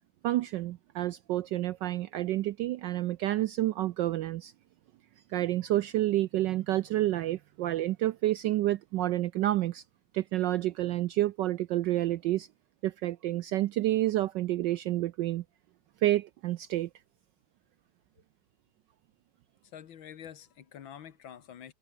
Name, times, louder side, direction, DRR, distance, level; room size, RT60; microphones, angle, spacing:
voice 1, 0.2-4.5 5.3-9.8 10.1-12.5 12.8-15.4 16.0-16.9, right 14 dB, 75° right, 1.0 m, -29 dB
voice 2, 19.7-21.7, left 9 dB, 65° left, 2.0 m, -47 dB
omnidirectional pair, 2.4 m